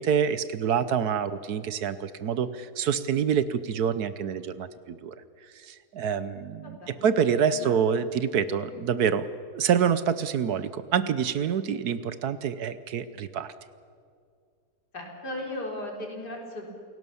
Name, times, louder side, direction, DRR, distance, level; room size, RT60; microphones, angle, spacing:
voice 1, 0.0-5.1 5.6-9.3 9.5-13.5, right 7 dB, 70° right, 14 dB, 1.3 m, -27 dB
voice 2, 6.6-7.1 7.5-7.7 14.9-16.7, left 1 dB, 70° left, 0 dB, 4.7 m, -36 dB
28.5 x 17.5 x 7.0 m, 2.2 s
omnidirectional pair, 1.8 m